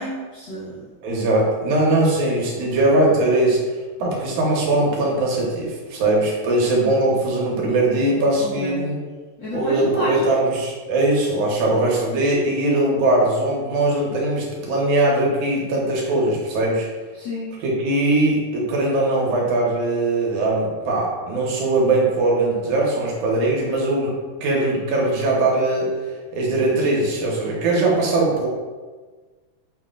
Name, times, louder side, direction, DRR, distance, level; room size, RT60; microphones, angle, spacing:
voice 1, 0.0-0.9 8.4-8.8 9.4-10.4 17.1-17.5, left 1 dB, 70° left, -10 dB, 1.1 m, -29 dB
voice 2, 1.0-9.0 9.5-16.9 17.6-24.1 24.4-25.9 26.3-28.5, right 2 dB, 80° right, -3 dB, 2.3 m, -20 dB
6.2 x 2.1 x 3.6 m, 1.4 s
omnidirectional pair, 3.5 m